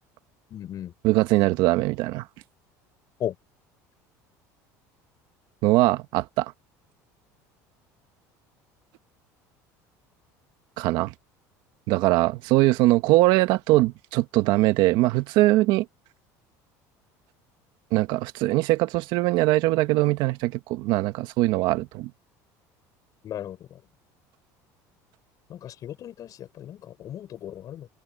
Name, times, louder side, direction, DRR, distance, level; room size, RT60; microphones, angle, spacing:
voice 1, 0.5-0.9 3.2-3.3 23.2-23.8 25.5-27.9, left 11 dB, 50° left, 5.5 m, -36 dB
voice 2, 1.0-2.2 5.6-6.5 10.8-11.1 11.9-15.8 17.9-22.1, right 18 dB, 70° right, 1.6 m, -21 dB
supercardioid pair, 105°, 8 cm